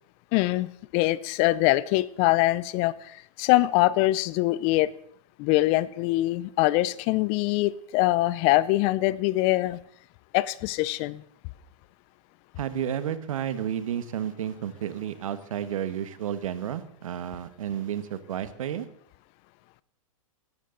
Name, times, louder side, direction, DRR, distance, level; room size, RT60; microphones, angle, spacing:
voice 1, 0.3-4.9 5.4-9.8 10.3-11.2, left 18 dB, 35° left, 20 dB, 0.6 m, -23 dB
voice 2, 12.6-18.9, right 9 dB, 70° right, 12 dB, 1.4 m, -31 dB
17.5 x 13.0 x 4.0 m, 0.67 s
hypercardioid pair, 135°, 18 cm